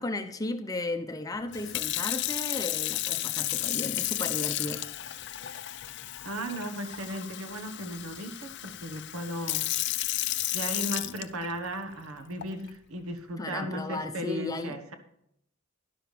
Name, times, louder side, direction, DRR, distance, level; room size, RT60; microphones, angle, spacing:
voice 1, 0.0-4.8 13.4-14.7, left 2 dB, 15° left, 8 dB, 0.7 m, -35 dB
Sink (filling or washing) / Fill (with liquid), 1.5-11.8 12.4-12.7, left 15 dB, 50° left, 0.5 m, -33 dB
voice 2, 6.2-9.6 10.5-15.0, right 1 dB, 80° right, 8 dB, 1.2 m, -36 dB
12.0 x 11.5 x 3.3 m, 0.75 s
head